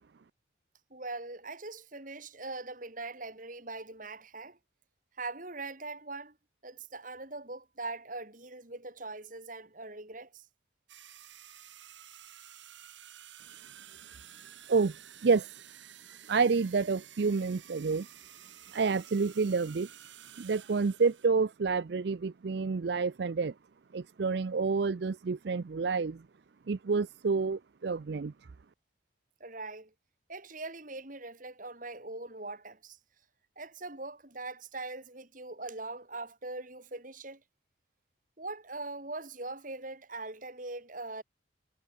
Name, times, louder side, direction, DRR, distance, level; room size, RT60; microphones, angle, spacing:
voice 1, 0.9-4.6 5.2-6.4 6.6-10.5 29.4-29.9 30.3-33.0 33.6-37.4 38.4-41.2, right 3 dB, 45° right, 3.8 m, -41 dB
sound 1, 10.9-21.3, right 11 dB, 75° right, 4.6 m, -52 dB
voice 2, 16.3-18.1 18.7-19.9 20.4-23.5 23.9-26.2 26.7-28.3, right 4 dB, 60° right, 0.5 m, -29 dB
head